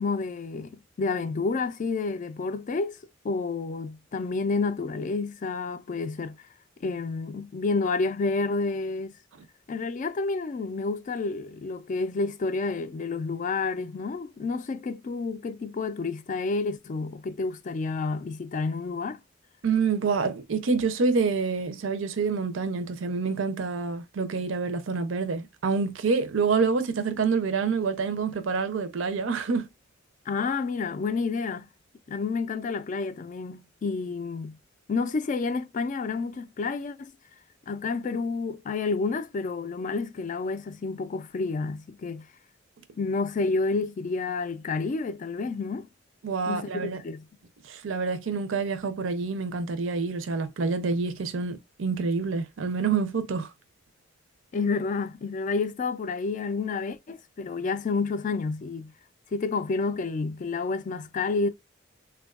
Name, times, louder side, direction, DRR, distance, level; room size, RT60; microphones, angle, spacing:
voice 1, 0.0-3.0 3.2-6.4 6.8-9.2 9.7-19.2 30.3-31.7 32.1-34.6 34.9-37.1 37.7-42.3 43.0-45.9 46.5-46.7 47.0-47.2 54.5-58.9 59.3-61.5, left 4 dB, 40° left, 0.3 m, -29 dB
voice 2, 19.6-29.7 46.2-47.0 47.6-53.5, right 4 dB, 80° right, 0.5 m, -27 dB
3.4 x 2.3 x 2.3 m
head